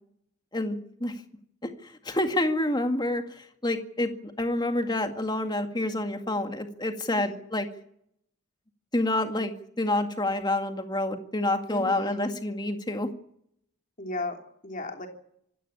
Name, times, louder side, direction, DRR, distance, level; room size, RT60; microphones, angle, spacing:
voice 1, 1.6-7.7 8.9-13.1, left 1 dB, 20° left, 6 dB, 2.0 m, -28 dB
voice 2, 7.1-7.4 11.7-12.3 14.0-15.1, left 2 dB, 40° left, 3 dB, 3.2 m, -36 dB
26.0 x 12.5 x 9.9 m, 0.72 s
head